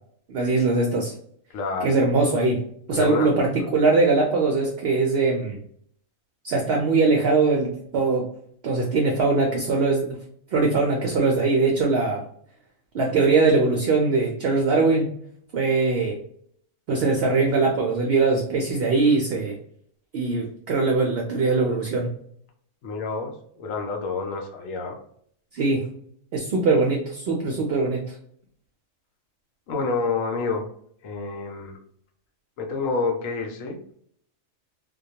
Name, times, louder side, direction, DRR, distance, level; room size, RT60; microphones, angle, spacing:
voice 1, 0.3-1.1 1.8-2.6 2.9-5.6 6.4-8.3 8.6-10.2 10.5-12.2 12.9-15.1 15.5-16.2 16.9-19.5 20.1-22.1 25.5-25.9 26.3-28.1, right 3 dB, 65° right, 0 dB, 0.6 m, -21 dB
voice 2, 1.5-1.9 2.9-3.3 22.8-25.0 29.7-30.7 31.0-31.8 32.6-33.8, left 4 dB, 80° left, 3 dB, 1.0 m, -28 dB
2.2 x 2.2 x 2.7 m, 0.64 s
omnidirectional pair, 1.4 m